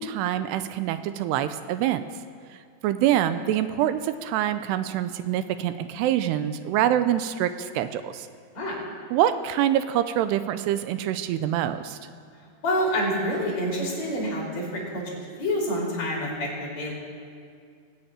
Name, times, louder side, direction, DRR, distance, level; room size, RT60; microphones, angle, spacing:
voice 1, 0.0-2.0 2.8-8.3 9.1-12.0, right 11 dB, 85° right, 11 dB, 2.7 m, -25 dB
voice 2, 12.6-16.9, equal, 45° left, -3 dB, 4.0 m, -27 dB
20.0 x 7.1 x 8.9 m, 2.2 s
omnidirectional pair, 4.8 m